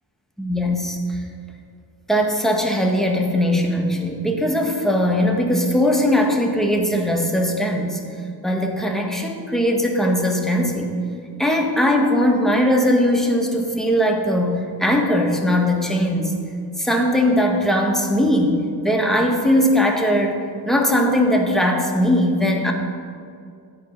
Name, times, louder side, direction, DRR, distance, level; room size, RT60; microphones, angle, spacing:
voice 1, 0.4-1.2 2.1-8.0 8.4-10.9 11.4-16.3 16.8-20.4 20.6-22.7, equal, ahead, 1 dB, 1.6 m, -19 dB
9.1 x 4.6 x 7.6 m, 2.3 s
cardioid pair, 45°, 43 cm